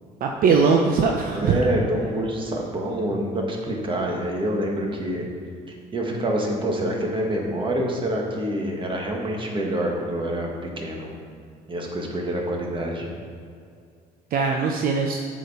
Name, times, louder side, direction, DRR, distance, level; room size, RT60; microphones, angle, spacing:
voice 1, 0.2-1.6 14.3-15.2, right 5 dB, 60° right, 1 dB, 0.7 m, -20 dB
voice 2, 1.3-5.3 5.9-11.1 11.7-13.1, right 1 dB, 30° right, 0 dB, 1.5 m, -26 dB
7.8 x 5.1 x 5.6 m, 2.3 s
cardioid pair, 110°, 17 cm